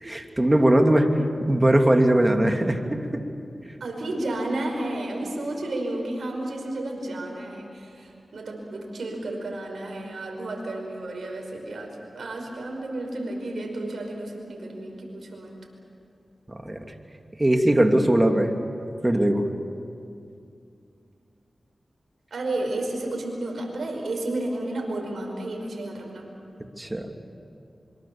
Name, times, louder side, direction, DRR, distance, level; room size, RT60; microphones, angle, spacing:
voice 1, 0.0-1.1 1.4-3.2 16.5-16.8 17.4-18.5 19.0-19.5 26.8-27.1, right 1 dB, 25° right, 4 dB, 2.7 m, -20 dB
voice 2, 3.8-15.5 22.3-26.3, right 1 dB, 80° right, 1 dB, 5.5 m, -32 dB
26.0 x 24.0 x 7.3 m, 2.5 s
cardioid pair, 40°, 0 cm